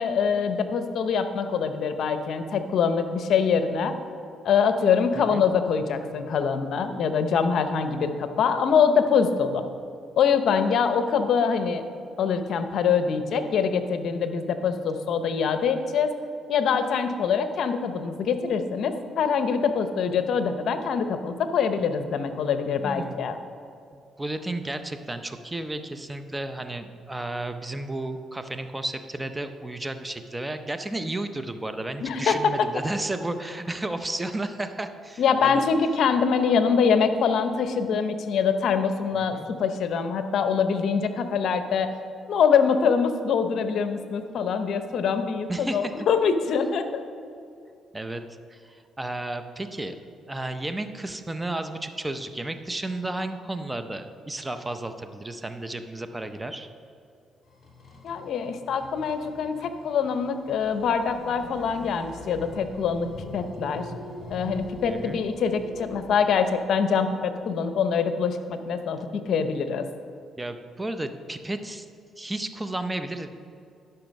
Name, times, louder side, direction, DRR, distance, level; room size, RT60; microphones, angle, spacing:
voice 1, 0.0-3.9 4.4-9.6 10.2-11.8 12.2-16.1 16.5-23.4 32.0-32.4 35.2-41.9 42.3-47.0 58.0-63.9 64.3-69.9, left 6 dB, 70° left, 9 dB, 0.7 m, -24 dB
voice 2, 22.8-23.2 24.2-35.6 39.1-39.5 45.5-46.1 47.9-48.2 48.5-56.7 64.9-65.2 70.4-71.9 72.2-73.3, right 2 dB, 15° right, 9 dB, 0.6 m, -33 dB
sound 1, 57.5-66.2, left 1 dB, 35° left, 2.3 m, -42 dB
12.5 x 5.8 x 5.3 m, 2.4 s
cardioid pair, 90°, 0 cm